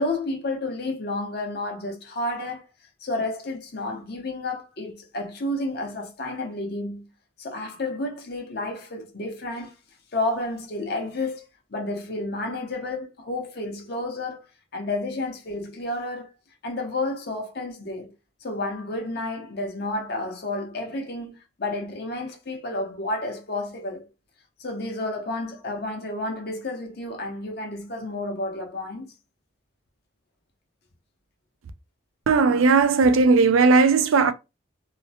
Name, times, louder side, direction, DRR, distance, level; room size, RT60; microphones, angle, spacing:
voice 1, 0.0-2.7 3.0-7.1 7.4-9.7 10.1-11.4 11.7-14.4 14.7-16.3 16.6-18.1 18.4-24.0 24.6-29.1, left 2 dB, 50° left, 0.8 m, -31 dB
voice 2, 32.3-34.3, right 4 dB, 90° right, 0.4 m, -17 dB
2.9 x 2.0 x 2.7 m
head